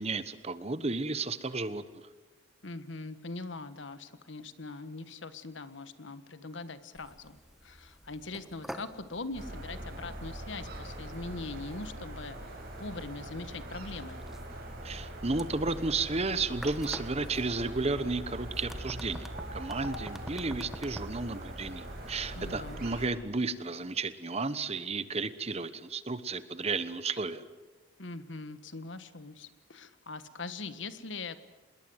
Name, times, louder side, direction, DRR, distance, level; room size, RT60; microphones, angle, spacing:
voice 1, 0.0-1.8 14.8-27.4, right 3 dB, 35° right, 14 dB, 1.1 m, -33 dB
voice 2, 2.6-14.2 22.3-22.8 28.0-31.4, left 3 dB, 75° left, 12 dB, 1.5 m, -42 dB
sound 1, 6.9-22.8, equal, ahead, 1.2 m, -48 dB
sound 2, 9.3-23.1, right 1 dB, 50° right, 6.4 m, -42 dB
26.5 x 21.0 x 8.1 m, 1.2 s
head